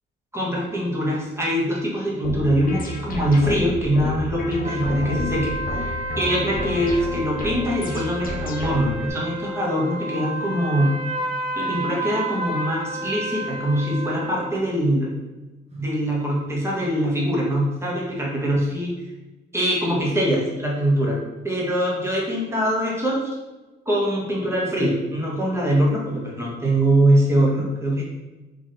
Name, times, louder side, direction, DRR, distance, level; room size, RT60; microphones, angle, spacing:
voice 1, 0.3-11.0 11.5-15.1 15.8-18.9 19.5-21.2 21.4-23.3 23.8-28.0, equal, 15° right, -4 dB, 1.4 m, -23 dB
sound 1, 2.2-9.1, left 2 dB, 45° left, 1.0 m, -31 dB
sound 2, 4.6-14.5, right 2 dB, 30° right, 0.9 m, -31 dB
4.1 x 3.0 x 3.3 m, 1.2 s
cardioid pair, 90°, 20 cm